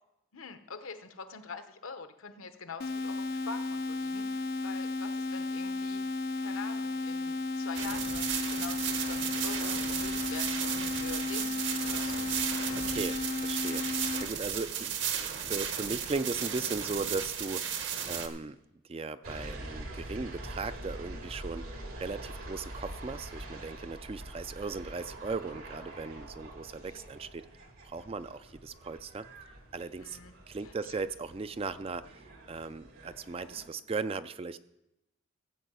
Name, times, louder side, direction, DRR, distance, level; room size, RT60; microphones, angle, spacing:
voice 1, 0.3-12.3 30.0-30.4 30.6-30.9, left 4 dB, 80° left, 8 dB, 1.0 m, -45 dB
sound 1, 2.8-14.2, left 3 dB, 45° left, 0.5 m, -34 dB
sound 2, 7.8-18.3, right 8 dB, 60° right, 1.1 m, -34 dB
voice 2, 12.8-14.9 15.2-18.6 18.9-29.3 29.7-30.2 30.5-34.6, right 4 dB, 25° right, 13 dB, 0.3 m, -38 dB
sound 3, 19.2-33.7, right 1 dB, 85° right, 2.7 m, -45 dB
15.5 x 5.4 x 8.1 m, 0.90 s
head